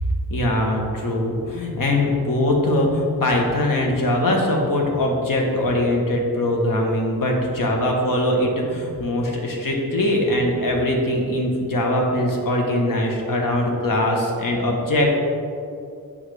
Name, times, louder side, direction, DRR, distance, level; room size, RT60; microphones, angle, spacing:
voice 1, 0.3-15.1, left 1 dB, 60° left, 0 dB, 1.1 m, -21 dB
7.1 x 5.1 x 3.3 m, 2.5 s
wide cardioid pair, 140°, 36 cm